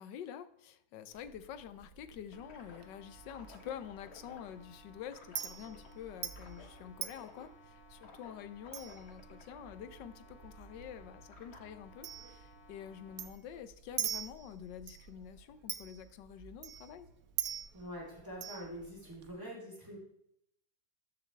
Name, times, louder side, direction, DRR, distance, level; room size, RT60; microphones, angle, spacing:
voice 1, 0.0-17.1, left 9 dB, 90° left, 13 dB, 1.4 m, -47 dB
Chink clink, 1.1-19.3, right 9 dB, 60° right, 1.1 m, -46 dB
sound 1, 2.3-13.3, left 2 dB, 40° left, 1.4 m, -57 dB
voice 2, 17.7-20.0, equal, 10° right, -5 dB, 3.5 m, -45 dB
13.0 x 6.6 x 3.3 m, 0.75 s
omnidirectional pair, 1.9 m